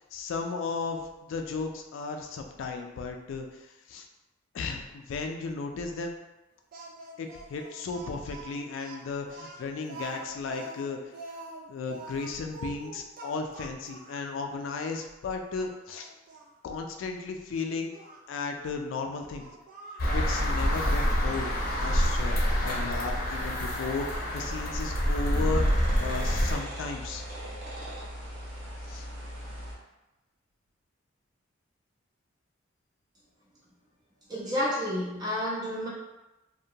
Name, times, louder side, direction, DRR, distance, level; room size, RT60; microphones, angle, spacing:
voice 1, 0.0-4.1 4.5-6.1 7.2-11.0 11.7-16.1 16.6-17.9 18.3-19.4 20.1-21.5 21.8-27.2 28.9-29.1, left 4 dB, 70° left, 4 dB, 0.3 m, -35 dB
Speech, 6.7-14.3 14.9-15.1 15.6-16.5 17.9-18.2 19.4-20.1, right 3 dB, 45° right, 0.4 m, -45 dB
sound 1, 20.0-26.6, equal, 50° left, 0.7 m, -27 dB
sound 2, 21.3-29.7, equal, 85° right, 0.9 m, -40 dB
voice 2, 34.3-35.9, left 1 dB, 20° right, -6 dB, 0.7 m, -30 dB
2.7 x 2.1 x 2.7 m, 1.0 s
head